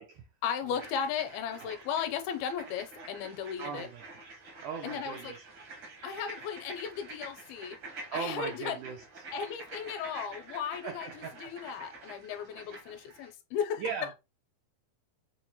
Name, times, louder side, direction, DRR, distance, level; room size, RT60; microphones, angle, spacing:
voice 1, 0.4-3.9 4.8-5.3 6.0-7.8 8.1-8.8 9.3-13.8, left 7 dB, 85° left, 2.4 m, -36 dB
sound 1, 0.7-13.3, right 3 dB, 70° right, 1.1 m, -48 dB
voice 2, 3.6-4.0 4.6-5.4 8.1-9.0 10.8-11.5 13.8-14.1, right 6 dB, 85° right, 1.7 m, -38 dB
6.2 x 2.1 x 2.8 m
omnidirectional pair, 4.4 m